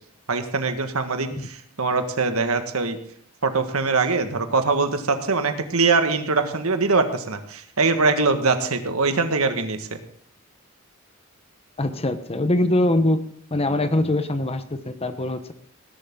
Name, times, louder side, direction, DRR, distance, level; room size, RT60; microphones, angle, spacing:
voice 1, 0.3-3.0 3.4-10.0, right 4 dB, 85° right, 7 dB, 1.7 m, -22 dB
voice 2, 11.8-13.2 13.5-15.5, left 1 dB, 30° left, 10 dB, 1.0 m, -23 dB
18.0 x 11.0 x 3.8 m, 0.62 s
head